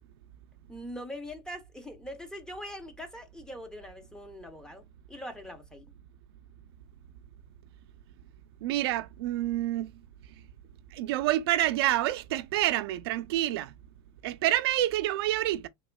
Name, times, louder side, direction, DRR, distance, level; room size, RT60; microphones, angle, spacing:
voice 1, 0.7-5.9, equal, 5° left, 0.6 m, -42 dB
voice 2, 8.6-9.9 10.9-13.7 14.2-15.7, right 14 dB, 80° right, 0.4 m, -28 dB
3.5 x 2.9 x 2.2 m
supercardioid pair, 140°, 13 cm